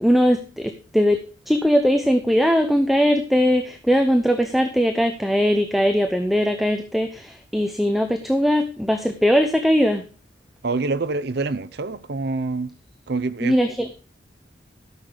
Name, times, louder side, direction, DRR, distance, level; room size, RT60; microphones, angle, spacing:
voice 1, 0.0-1.2 1.5-10.0 13.4-13.9, equal, ahead, 0.6 m, -20 dB
voice 2, 10.6-12.7 13.1-13.6, right 3 dB, 60° right, 0.6 m, -26 dB
12.5 x 6.4 x 5.0 m
head